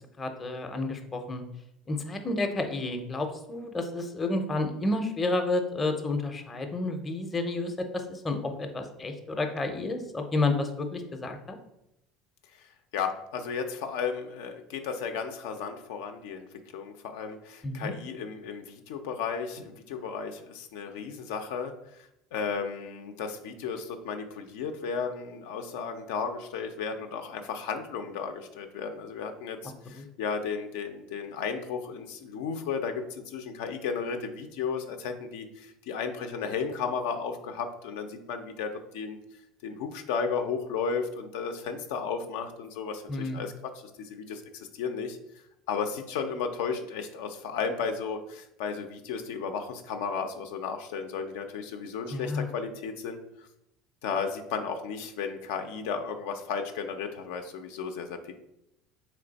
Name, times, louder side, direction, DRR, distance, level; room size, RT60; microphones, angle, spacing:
voice 1, 0.2-1.4 1.9-11.6 17.6-17.9 29.9-30.0 43.1-43.4 52.1-52.5, left 2 dB, 20° left, 5 dB, 0.5 m, -30 dB
voice 2, 12.5-16.5 16.7-39.2 39.6-45.2 45.7-53.5 54.0-58.4, left 6 dB, 85° left, 6 dB, 0.4 m, -34 dB
3.3 x 3.1 x 3.9 m, 0.83 s
supercardioid pair, 120°, 0 cm